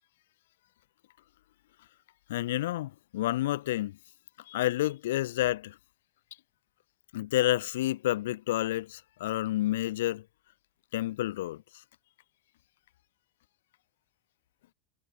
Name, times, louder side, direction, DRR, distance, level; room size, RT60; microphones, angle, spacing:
voice 1, 2.3-4.0 4.5-5.8 7.1-10.2 10.9-11.6, left 15 dB, 90° left, 0.5 m, -29 dB
supercardioid pair, 160°, 0 cm